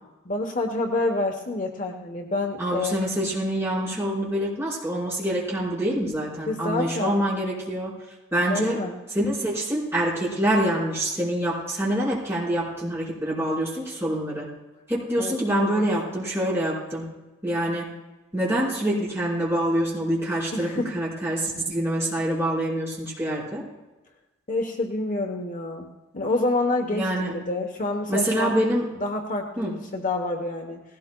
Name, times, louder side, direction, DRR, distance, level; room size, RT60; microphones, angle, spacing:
voice 1, 0.2-3.1 6.5-7.2 8.5-9.0 15.2-15.9 20.5-20.9 24.5-25.9 26.1-28.6 29.0-30.8, left 2 dB, 40° left, 3 dB, 1.0 m, -28 dB
voice 2, 2.6-7.9 8.3-8.8 9.1-14.5 14.9-17.1 17.4-17.9 18.3-23.6 26.9-27.3 28.1-28.9 29.6-29.7, right 1 dB, 15° right, -8 dB, 4.8 m, -26 dB
18.5 x 17.0 x 2.3 m, 1.1 s
head